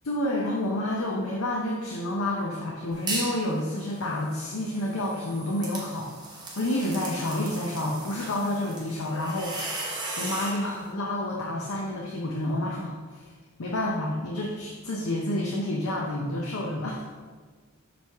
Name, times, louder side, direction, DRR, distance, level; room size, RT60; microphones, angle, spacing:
voice 1, 0.0-13.3 13.6-17.1, left 1 dB, 85° left, -2 dB, 0.7 m, -29 dB
sound 1, 3.1-3.4 3.8-10.6, right 2 dB, 20° right, 1.1 m, -37 dB
6.1 x 4.6 x 3.5 m, 1.5 s
head